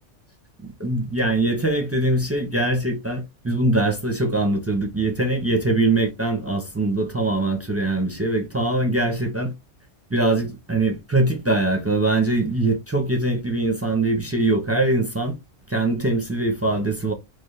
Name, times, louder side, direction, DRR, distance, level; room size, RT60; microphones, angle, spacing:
voice 1, 0.8-9.5 10.1-15.3 15.7-17.1, right 2 dB, 15° right, 0.5 m, -22 dB
5.0 x 2.0 x 3.2 m
omnidirectional pair, 1.3 m